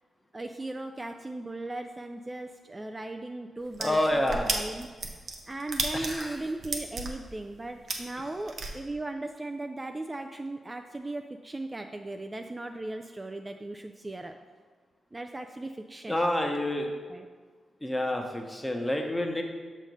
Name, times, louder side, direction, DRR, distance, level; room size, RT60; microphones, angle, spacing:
voice 1, 0.3-4.9 5.5-14.4 15.1-16.2 16.9-17.3, right 2 dB, 25° right, 5 dB, 0.4 m, -37 dB
sound 1, 3.7-8.7, right 3 dB, 65° right, 0.7 m, -33 dB
voice 2, 3.8-4.5 5.9-6.4 16.1-16.9 17.8-19.4, left 1 dB, 15° left, 3 dB, 1.0 m, -28 dB
6.4 x 3.2 x 5.2 m, 1.5 s
supercardioid pair, 40°, 0 cm